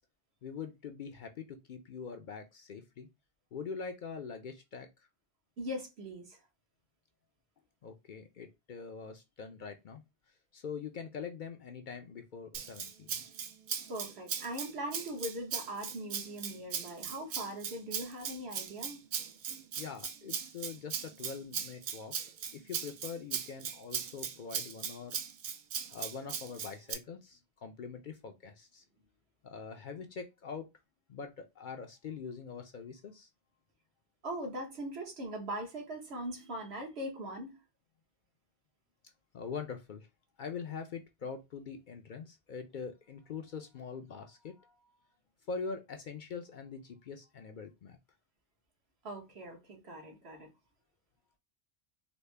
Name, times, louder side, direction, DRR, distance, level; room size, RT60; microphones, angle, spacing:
voice 1, 0.4-3.1 3.5-4.9 7.8-10.0 10.5-13.2 19.8-22.1 22.5-25.2 25.9-28.8 29.4-30.6 31.1-33.3 39.3-40.1 40.4-44.9 45.5-48.0, left 5 dB, 60° left, 0.6 m, -43 dB
voice 2, 5.6-6.4 13.9-19.0 34.2-37.6 49.0-50.5, right 1 dB, 75° right, 1.4 m, -40 dB
Rattle (instrument), 12.5-26.9, right 7 dB, 55° right, 0.6 m, -39 dB
4.0 x 2.1 x 3.2 m
omnidirectional pair, 1.1 m